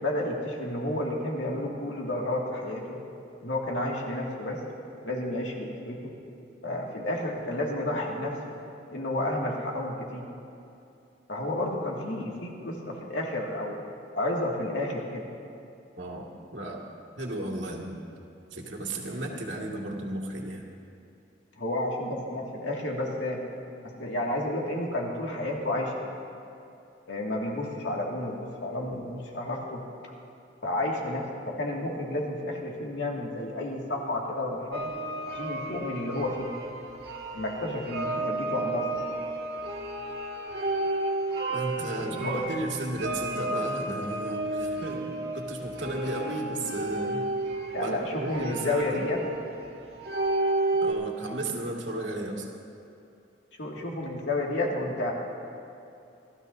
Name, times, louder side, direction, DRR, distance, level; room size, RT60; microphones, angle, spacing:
voice 1, 0.0-3.0 3.4-4.6 5.0-6.1 6.6-8.5 8.9-10.3 11.3-13.8 14.1-15.2 21.6-23.4 23.8-26.1 27.1-29.8 30.6-34.9 35.3-36.5 37.3-39.1 41.8-42.5 47.7-49.2 53.6-55.1, left 1 dB, 80° left, -2 dB, 2.2 m, -31 dB
voice 2, 16.0-16.9 17.2-18.0 18.5-20.7 41.5-47.3 47.8-49.1 50.8-52.5, right 1 dB, 80° right, -1 dB, 2.1 m, -34 dB
sound 1, 34.7-50.9, right 2 dB, 60° right, 1.7 m, -32 dB
27.5 x 13.0 x 2.7 m, 2.7 s
head